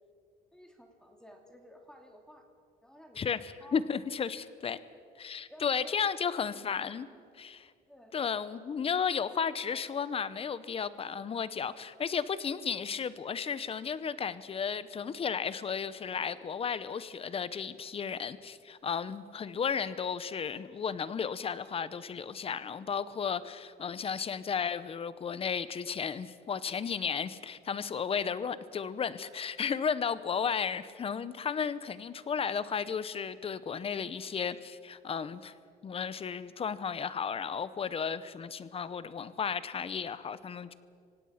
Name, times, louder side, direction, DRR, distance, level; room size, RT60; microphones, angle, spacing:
voice 1, 0.5-2.5 2.8-3.2 3.6-3.8 5.5-6.1 6.3-6.7 7.9-8.1, equal, 5° left, 3 dB, 2.8 m, -54 dB
voice 2, 3.2-4.8 5.2-7.1 7.3-7.7 8.1-35.5 35.8-40.7, left 6 dB, 35° left, 15 dB, 0.9 m, -34 dB
25.5 x 17.5 x 5.9 m, 2.2 s
cardioid pair, 110°, 17 cm